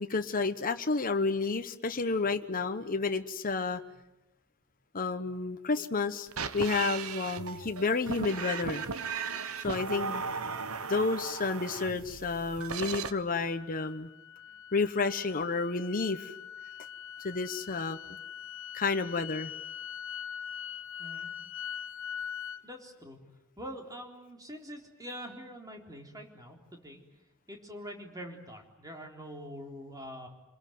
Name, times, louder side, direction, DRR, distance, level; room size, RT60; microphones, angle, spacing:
voice 1, 0.0-3.8 4.9-6.3 6.5-8.8 9.6-10.3 10.9-14.1 14.7-16.3 17.2-18.2 18.7-19.5, left 4 dB, 40° left, 7 dB, 1.1 m, -30 dB
sound 1, 6.3-13.1, right 5 dB, 85° right, 1.2 m, -36 dB
sound 2, 13.5-22.6, left 8 dB, 60° left, 1.7 m, -42 dB
voice 2, 21.0-21.3 22.6-23.2 23.6-27.0 27.5-30.3, equal, 15° right, 2 dB, 3.9 m, -44 dB
27.5 x 21.5 x 9.4 m, 0.98 s
head